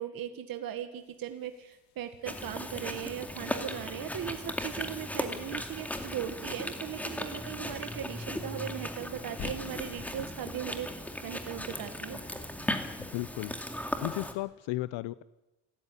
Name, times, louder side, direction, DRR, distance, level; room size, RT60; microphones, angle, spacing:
voice 1, 0.0-10.9 11.2-12.2, right 10 dB, 55° right, 7 dB, 1.8 m, -38 dB
sound 1, 1.0-10.3, left 7 dB, 65° left, 3.4 m, -52 dB
Chewing mastication, 2.2-14.3, left 1 dB, 5° left, 2.3 m, -37 dB
voice 2, 13.1-13.5 14.0-15.2, left 18 dB, 80° left, 16 dB, 0.7 m, -34 dB
28.0 x 14.0 x 9.9 m, 1.0 s
cardioid pair, 135°, 43 cm